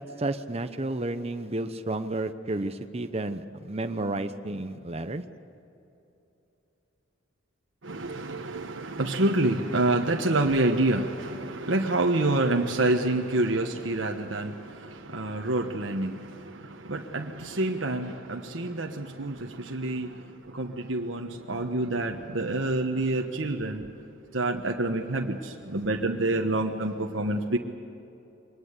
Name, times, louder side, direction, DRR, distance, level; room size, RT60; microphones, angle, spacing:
voice 1, 0.0-5.2, right 2 dB, 30° right, 8 dB, 0.9 m, -31 dB
voice 2, 7.8-23.9 24.3-27.6, right 2 dB, 65° right, 2 dB, 1.3 m, -27 dB
23.5 x 20.0 x 8.2 m, 2.9 s
head